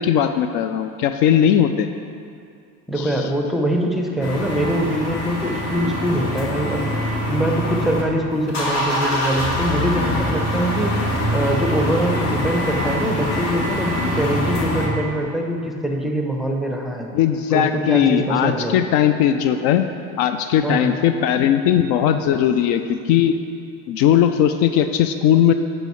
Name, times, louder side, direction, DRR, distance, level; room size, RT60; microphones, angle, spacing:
voice 1, 0.0-1.9 3.0-3.2 17.1-19.9 20.2-23.3 23.9-25.5, left 9 dB, 60° left, 9 dB, 0.5 m, -18 dB
voice 2, 2.9-17.1 17.5-18.8 20.6-20.9, right 1 dB, ahead, 1 dB, 0.6 m, -23 dB
sound 1, 4.2-8.0 8.3-14.9, left 1 dB, 40° left, 1.5 m, -24 dB
8.9 x 5.4 x 3.1 m, 2.4 s
supercardioid pair, 90°, 41 cm